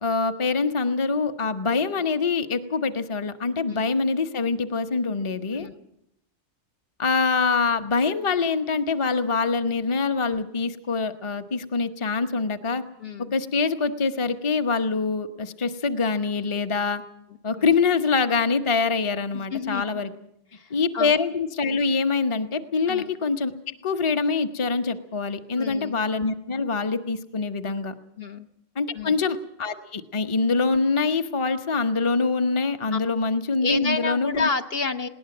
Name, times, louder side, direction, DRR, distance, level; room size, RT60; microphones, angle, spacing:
voice 1, 0.0-5.7 7.0-12.8 13.3-17.0 17.4-20.1 20.7-23.5 23.8-27.9 28.8-34.5, left 4 dB, 25° left, 8 dB, 1.0 m, -24 dB
voice 2, 13.0-13.3 17.6-17.7 19.3-19.8 20.5-21.1 22.9-23.1 25.6-26.0 28.2-28.5 28.9-29.1 32.9-33.0 33.6-35.1, left 4 dB, 55° left, 6 dB, 1.3 m, -29 dB
20.5 x 18.5 x 7.8 m, 0.77 s
omnidirectional pair, 1.2 m